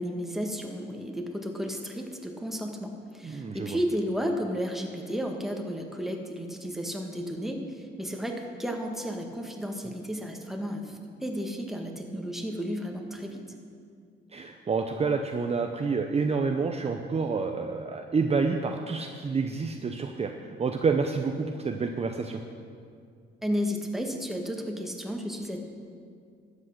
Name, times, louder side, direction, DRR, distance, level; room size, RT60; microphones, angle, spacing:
voice 1, 0.0-13.4 23.4-25.6, equal, ahead, 2 dB, 1.7 m, -33 dB
voice 2, 3.2-3.8 14.3-20.3 20.6-22.4, right 4 dB, 30° right, 5 dB, 0.7 m, -28 dB
13.0 x 8.5 x 6.6 m, 2.3 s
cardioid pair, 90°, 20 cm